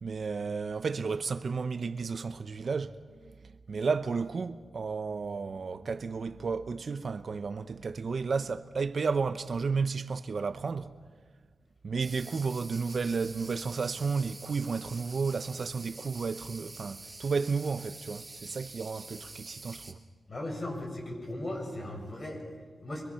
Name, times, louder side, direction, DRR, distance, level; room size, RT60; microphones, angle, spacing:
voice 1, 0.0-10.9 11.8-20.0, right 5 dB, 60° right, 0.8 m, -32 dB
sound 1, 12.0-19.9, right 2 dB, 30° right, 2.7 m, -47 dB
voice 2, 20.3-23.1, left 1 dB, 40° left, 7.2 m, -37 dB
25.0 x 24.0 x 5.7 m
cardioid pair, 80°, 0 cm